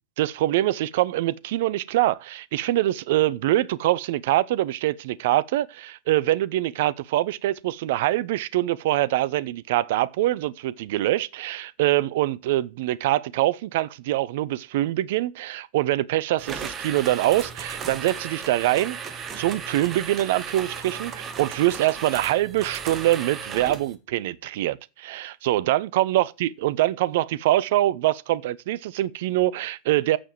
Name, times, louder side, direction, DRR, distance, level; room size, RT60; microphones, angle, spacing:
voice 1, 0.2-30.2, right 15 dB, 50° right, 0.6 m, -24 dB
sound 1, 16.4-24.0, right 6 dB, 25° right, 1.5 m, -35 dB
8.6 x 7.1 x 7.7 m
figure-of-eight pair, 90°, 0 cm